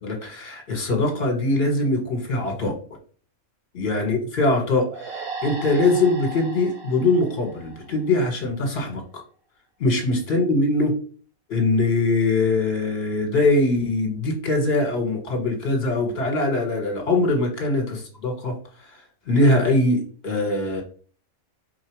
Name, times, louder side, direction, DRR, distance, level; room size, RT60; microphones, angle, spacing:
voice 1, 0.0-2.7 3.7-9.0 9.8-11.0 11.5-18.5 19.3-20.8, left 2 dB, 45° left, 2 dB, 1.5 m, -22 dB
sound 1, 4.9-8.4, right 3 dB, 90° right, 1.7 m, -36 dB
4.8 x 2.4 x 4.5 m, 0.42 s
omnidirectional pair, 1.5 m